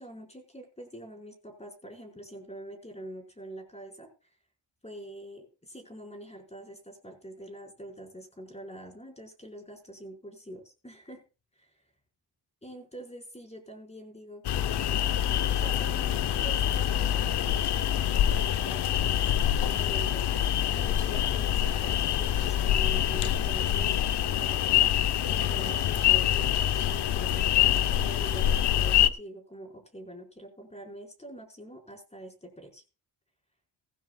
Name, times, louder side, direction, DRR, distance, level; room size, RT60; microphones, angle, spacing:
voice 1, 0.0-4.3 4.8-11.2 11.5-11.8 12.6-15.0 15.5-17.5 18.1-20.3 20.7-24.8 25.3-32.8, right 1 dB, 15° left, 4 dB, 4.7 m, -45 dB
sound 1, 14.4-29.1, left 11 dB, 60° left, 0.8 m, -25 dB
16.5 x 15.0 x 2.3 m, 0.31 s
cardioid pair, 70°, 46 cm